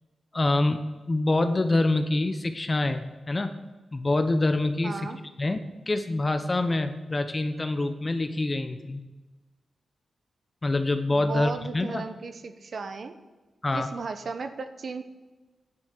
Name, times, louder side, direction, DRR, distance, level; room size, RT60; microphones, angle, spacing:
voice 1, 0.3-0.8 1.1-3.6 3.9-5.1 5.4-5.6 5.9-9.0 10.6-12.0 13.6-13.9, left 2 dB, 30° left, 8 dB, 0.9 m, -26 dB
voice 2, 4.8-5.2 11.1-13.2 13.7-15.0, right 4 dB, 60° right, 9 dB, 1.0 m, -35 dB
11.0 x 6.3 x 8.9 m, 1.2 s
cardioid pair, 80°, 0 cm